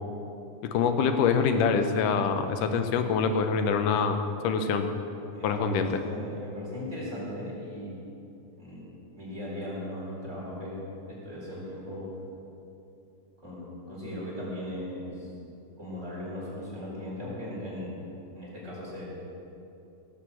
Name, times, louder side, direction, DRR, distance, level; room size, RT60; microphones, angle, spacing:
voice 1, 0.7-4.9 5.4-6.0, left 5 dB, 85° left, 7 dB, 2.5 m, -25 dB
voice 2, 5.3-8.0 8.6-12.1 13.4-15.3 15.8-18.0 18.3-19.1, left 1 dB, 20° right, -7 dB, 4.6 m, -38 dB
17.0 x 8.2 x 7.7 m, 2.8 s
omnidirectional pair, 3.6 m